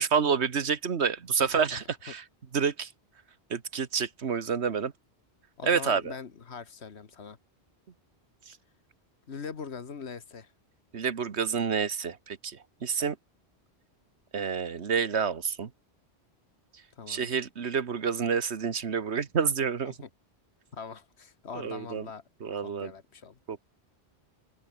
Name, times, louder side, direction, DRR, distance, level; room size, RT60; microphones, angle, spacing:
voice 1, 0.0-2.2 2.5-2.9 3.5-4.9 5.6-6.1 8.5-8.6 10.9-13.2 14.3-15.7 17.1-19.9 21.5-22.1 22.4-22.9 23.5-23.6, right 6 dB, 75° right, 1.6 m, -28 dB
voice 2, 5.6-7.4 9.3-10.5 16.9-17.3 19.9-20.1 20.7-22.2 22.6-23.4, left 6 dB, 75° left, 1.7 m, -42 dB
omnidirectional pair, 1.1 m